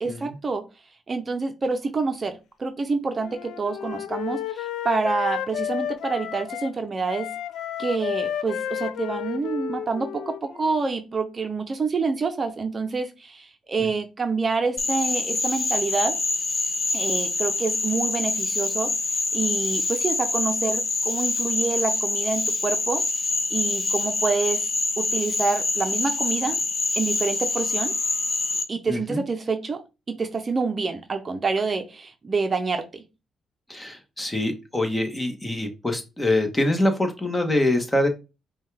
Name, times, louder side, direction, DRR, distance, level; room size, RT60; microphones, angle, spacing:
voice 1, 0.0-0.6 1.1-7.3 7.8-16.2 16.9-23.0 23.5-24.6 25.0-26.6 27.0-27.9 28.7-29.8 30.1-33.0, right 4 dB, 35° right, 6 dB, 0.7 m, -27 dB
Wind instrument woodwind instrument, 3.2-6.7 7.1-10.8, left 10 dB, 75° left, 0.4 m, -32 dB
Frog, 14.8-28.6, left 3 dB, 40° left, 0.9 m, -26 dB
voice 2, 28.9-29.2 33.7-38.1, left 1 dB, 15° left, 6 dB, 1.2 m, -24 dB
5.4 x 2.3 x 3.4 m, 0.27 s
cardioid pair, 90°, 0 cm